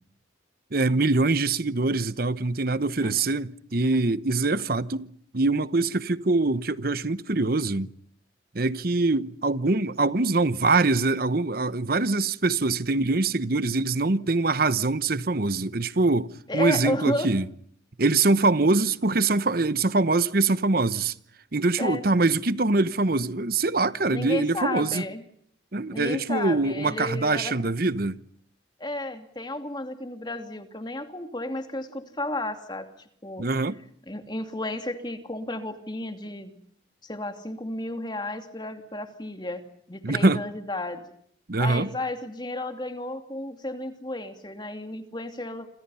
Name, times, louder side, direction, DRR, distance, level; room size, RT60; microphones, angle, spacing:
voice 1, 0.7-7.9 8.5-17.5 18.0-21.1 21.5-25.0 25.7-28.2 33.4-33.8 40.0-40.4 41.5-41.9, right 3 dB, 50° right, 1.0 m, -24 dB
voice 2, 16.5-17.3 21.8-22.0 24.1-25.2 25.9-27.5 28.8-32.9 33.2-33.4 34.1-36.6 37.0-39.6 39.9-41.1 41.6-45.7, left 1 dB, 25° left, 2.7 m, -32 dB
28.5 x 27.0 x 5.7 m
head